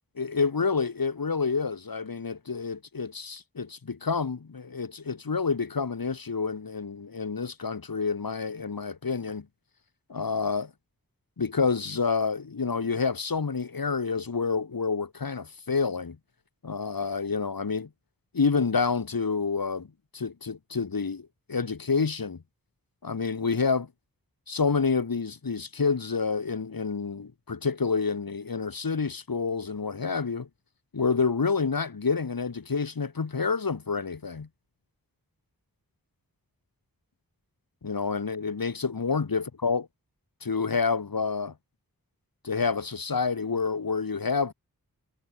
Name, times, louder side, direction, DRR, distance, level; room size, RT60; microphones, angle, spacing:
voice 1, 0.2-9.5 10.1-10.7 11.4-16.2 16.6-17.9 18.3-19.9 20.1-22.4 23.0-23.9 24.5-30.5 30.9-34.5 37.8-39.9 40.4-41.5 42.4-44.5, left 5 dB, 75° left, 4.3 m, -28 dB
wide cardioid pair, 85°, 35 cm